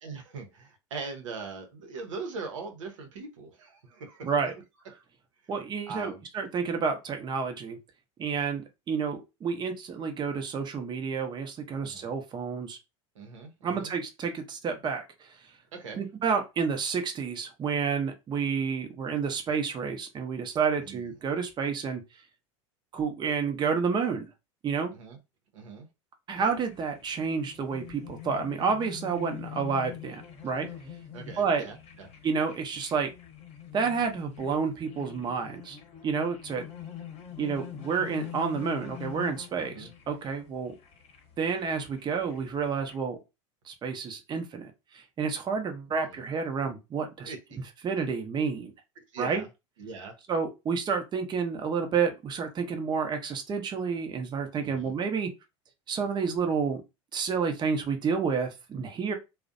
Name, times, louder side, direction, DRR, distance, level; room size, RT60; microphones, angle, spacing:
voice 1, 0.0-4.4 4.9-5.0 5.9-6.2 11.8-12.1 13.2-13.9 15.7-16.0 20.7-21.1 24.9-25.2 25.5-25.9 31.1-32.1 39.7-39.9 46.1-46.2 47.2-47.6 49.0-49.5 49.8-50.2 54.6-54.9, right 4 dB, 85° right, 0.7 m, -41 dB
voice 2, 4.2-4.5 5.5-7.8 8.2-12.8 13.6-15.0 16.0-22.0 22.9-24.3 24.6-24.9 26.3-30.7 31.4-31.6 32.2-33.1 33.7-35.8 36.0-36.6 37.4-40.7 41.4-43.2 43.7-47.3 47.8-48.7 49.2-49.4 50.3-55.3 55.9-56.8 57.1-59.1, right 5 dB, 30° right, 0.6 m, -30 dB
sound 1, 26.3-43.0, left 10 dB, 40° left, 0.8 m, -45 dB
2.4 x 2.0 x 2.5 m
hypercardioid pair, 90°, 16 cm